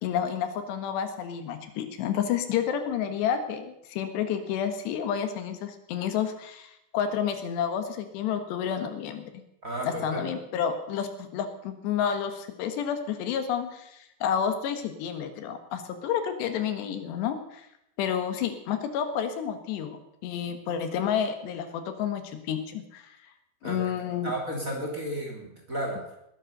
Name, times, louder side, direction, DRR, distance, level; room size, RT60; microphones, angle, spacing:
voice 1, 0.0-9.3 9.8-17.7 18.0-23.2 23.6-24.3, left 8 dB, 85° left, 8 dB, 3.7 m, -30 dB
voice 2, 9.6-10.2 23.6-23.8 24.2-26.0, right 1 dB, 25° right, 0 dB, 2.7 m, -33 dB
19.5 x 10.0 x 6.6 m, 0.80 s
omnidirectional pair, 4.8 m